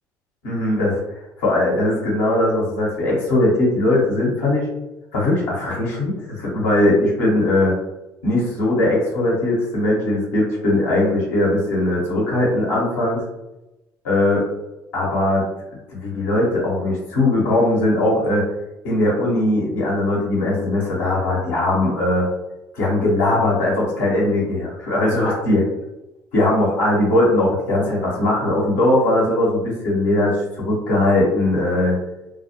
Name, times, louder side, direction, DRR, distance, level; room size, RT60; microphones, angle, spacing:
voice 1, 0.4-1.0 1.4-4.7 5.1-7.7 8.2-13.2 14.0-14.4 14.9-15.5 16.0-18.4 18.8-22.3 22.7-25.7 26.3-32.0, left 1 dB, 85° left, -5 dB, 0.8 m, -19 dB
2.2 x 2.0 x 2.7 m, 0.96 s
hypercardioid pair, 65°, 9 cm